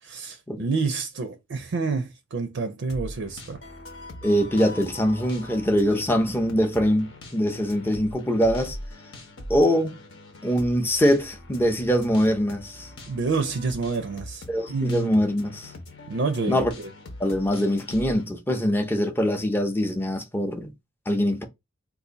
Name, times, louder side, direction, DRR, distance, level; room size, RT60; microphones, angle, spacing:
voice 1, 0.0-3.6 13.1-14.4 14.7-15.1 16.1-16.9, right 4 dB, 65° right, 0.5 m, -28 dB
sound 1, 2.9-18.3, left 1 dB, 65° left, 0.9 m, -42 dB
voice 2, 4.2-8.8 9.5-10.0 10.4-12.9 14.5-15.7 16.5-16.7 17.2-20.7 21.1-21.4, equal, 10° left, 0.6 m, -23 dB
2.7 x 2.5 x 3.8 m
head